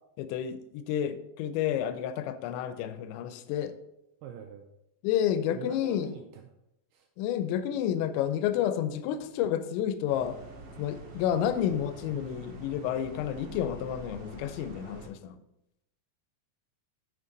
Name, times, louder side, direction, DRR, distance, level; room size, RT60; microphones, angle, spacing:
voice 1, 0.2-3.7 5.0-6.1 7.2-10.4 10.8-15.4, left 10 dB, 85° left, 12 dB, 2.9 m, -30 dB
voice 2, 4.2-4.7 5.5-6.5 6.9-7.1, right 9 dB, 85° right, 5 dB, 2.3 m, -44 dB
sound 1, 10.1-15.1, right 3 dB, 55° right, 2.9 m, -46 dB
8.3 x 7.0 x 3.8 m, 0.85 s
omnidirectional pair, 5.1 m